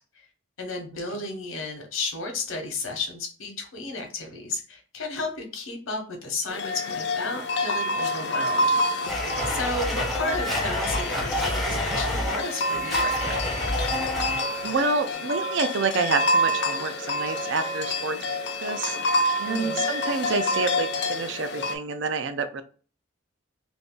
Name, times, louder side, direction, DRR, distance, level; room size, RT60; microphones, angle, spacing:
voice 1, 0.6-9.1 9.5-13.5 19.4-19.8, left 3 dB, 80° left, 3 dB, 0.9 m, -33 dB
sound 1, 6.5-21.8, left 1 dB, 55° left, 0.4 m, -28 dB
Domestic sounds home sounds, 9.1-14.7, equal, ahead, 0.5 m, -29 dB
voice 2, 14.6-18.2 18.6-19.0 19.4-22.6, right 4 dB, 60° right, 9 dB, 0.4 m, -28 dB
2.6 x 2.4 x 3.7 m, 0.38 s
head